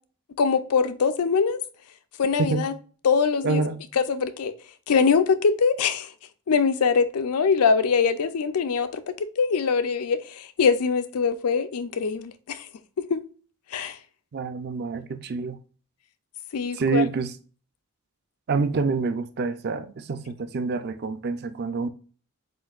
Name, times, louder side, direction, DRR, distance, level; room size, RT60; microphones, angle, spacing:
voice 1, 0.4-1.6 2.2-2.7 3.0-3.6 4.1-4.5 4.9-6.1 6.5-12.7 13.0-13.2 13.7-14.0 16.5-17.0, left 5 dB, 85° left, 0.5 m, -23 dB
voice 2, 3.4-3.8 14.3-15.6 16.7-17.3 18.5-21.9, right 4 dB, 45° right, 0.4 m, -27 dB
7.6 x 2.5 x 2.3 m
head